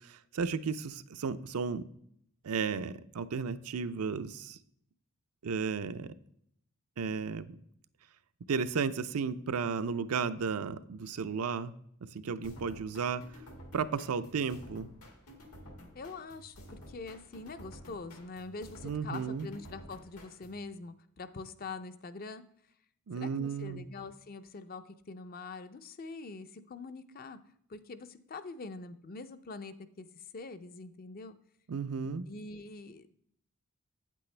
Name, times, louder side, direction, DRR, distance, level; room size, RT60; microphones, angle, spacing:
voice 1, 0.0-1.8 2.4-4.6 5.4-6.1 7.0-7.6 8.5-11.7 12.1-13.2 13.7-14.9 18.8-19.5 23.1-23.9 31.7-32.2, right 5 dB, 80° right, 12 dB, 0.5 m, -34 dB
sound 1, 12.4-20.7, equal, 85° left, 1.9 m, -52 dB
voice 2, 15.9-22.4 23.2-27.4 27.7-31.3 32.3-33.3, left 3 dB, 40° left, 11 dB, 0.5 m, -44 dB
8.6 x 8.4 x 3.3 m, 0.70 s
head